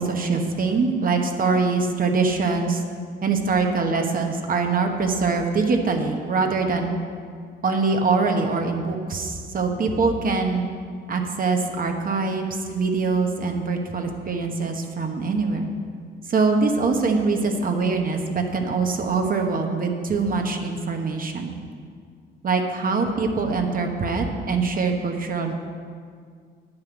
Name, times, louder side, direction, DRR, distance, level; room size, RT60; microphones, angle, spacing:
voice 1, 0.0-2.8 3.2-7.0 7.6-10.7 11.1-15.7 16.3-21.5 22.4-25.5, right 4 dB, 45° right, 3 dB, 1.2 m, -23 dB
9.7 x 5.7 x 8.0 m, 2.1 s
cardioid pair, 90°, 20 cm